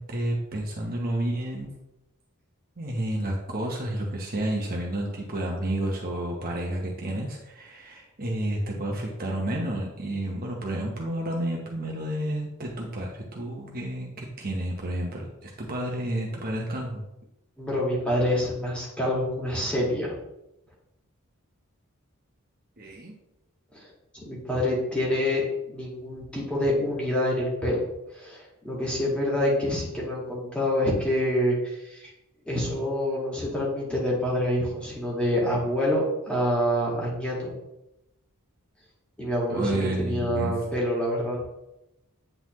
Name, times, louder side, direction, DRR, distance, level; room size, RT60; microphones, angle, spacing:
voice 1, 0.0-1.7 2.8-17.0 22.8-23.2 39.5-40.6, right 1 dB, 45° right, 0 dB, 0.9 m, -30 dB
voice 2, 17.6-20.2 23.7-23.9 24.1-27.8 28.1-32.1 32.5-37.5 39.2-41.4, left 1 dB, 5° left, -5 dB, 1.9 m, -27 dB
9.0 x 3.9 x 3.1 m, 0.90 s
head